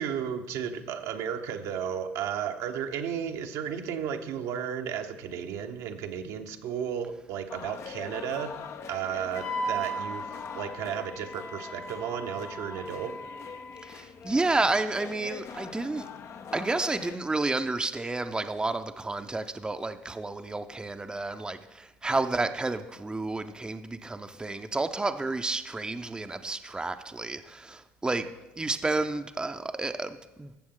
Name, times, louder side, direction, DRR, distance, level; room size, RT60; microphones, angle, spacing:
voice 1, 0.0-8.6 8.9-13.1, right 8 dB, 70° right, 5 dB, 0.9 m, -34 dB
sound 1, 7.5-17.2, left 7 dB, 50° left, 0.7 m, -43 dB
Wind instrument woodwind instrument, 9.4-14.0, right 1 dB, 75° left, 1.8 m, -37 dB
voice 2, 13.8-16.1 16.5-28.3 28.6-30.5, right 3 dB, 15° right, 8 dB, 0.6 m, -30 dB
14.0 x 7.0 x 3.8 m, 1.0 s
hypercardioid pair, 70°, 6 cm